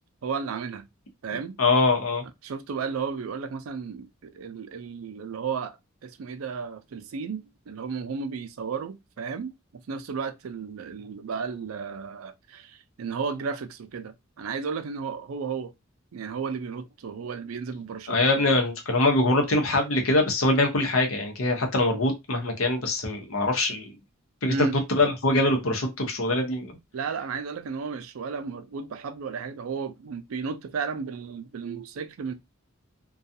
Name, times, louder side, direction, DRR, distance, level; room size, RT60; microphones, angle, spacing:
voice 1, 0.2-0.9 1.2-1.6 2.4-5.8 6.0-15.7 16.1-18.5 24.5-24.8 26.9-32.3, right 5 dB, 90° right, 0.4 m, -33 dB
voice 2, 1.6-2.2 18.1-23.9 24.4-26.8, left 2 dB, 80° left, 0.8 m, -23 dB
2.3 x 2.3 x 2.6 m
head